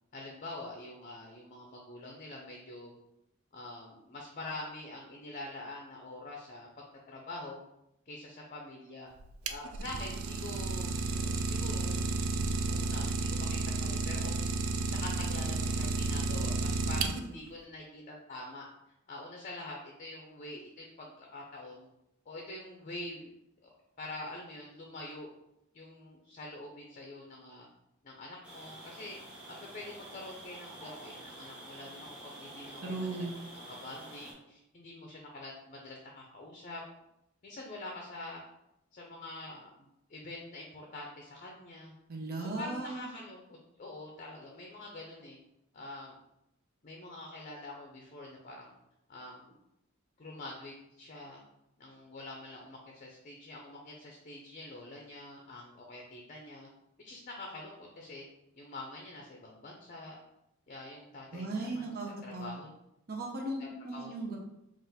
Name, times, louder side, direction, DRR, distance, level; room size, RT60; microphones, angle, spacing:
voice 1, 0.1-2.9 3.5-7.6 8.1-9.1 9.4-14.4 14.8-18.7 19.1-21.9 22.3-23.3 23.6-23.7 24.0-25.3 25.7-27.7 28.0-29.2 29.6-33.3 33.5-36.8 37.4-38.4 38.9-41.9 42.4-43.4 43.8-45.4 45.7-46.2 46.8-48.7 49.1-49.6 50.2-51.4 51.8-56.7 57.0-58.2 58.5-60.2 60.7-61.9 62.2-62.7 63.6-64.1, left 2 dB, 40° left, 0 dB, 0.6 m, -45 dB
Idling, 9.2-17.5, right 3 dB, 75° right, 0.4 m, -32 dB
sound 1, 28.4-34.3, right 1 dB, 5° right, 1.0 m, -48 dB
voice 2, 32.8-33.3 42.1-43.1 61.3-62.5 63.1-64.4, right 2 dB, 45° right, -1 dB, 0.7 m, -37 dB
3.8 x 2.5 x 4.1 m, 0.85 s
head